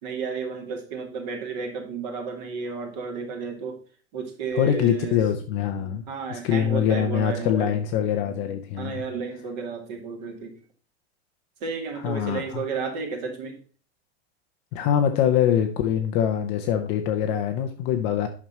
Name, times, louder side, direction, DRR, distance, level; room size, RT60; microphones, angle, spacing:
voice 1, 0.0-3.8 4.1-5.2 6.1-7.7 8.8-10.5 11.6-13.6, right 5 dB, 45° right, 4 dB, 2.4 m, -32 dB
voice 2, 4.5-6.0 6.3-9.0 12.0-12.6 14.7-18.3, left 9 dB, 20° left, 5 dB, 0.5 m, -24 dB
9.1 x 6.1 x 4.1 m, 0.40 s
supercardioid pair, 175°, 31 cm